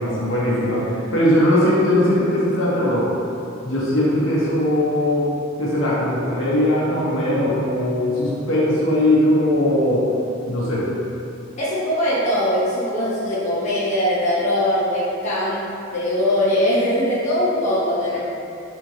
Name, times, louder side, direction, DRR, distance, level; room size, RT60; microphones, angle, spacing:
voice 1, 0.0-3.1 3.6-5.3 5.6-10.1 10.5-10.9, left 1 dB, 70° left, -6 dB, 0.8 m, -19 dB
voice 2, 11.6-18.2, left 1 dB, 35° left, -10 dB, 0.6 m, -21 dB
3.6 x 3.1 x 2.7 m, 2.7 s
head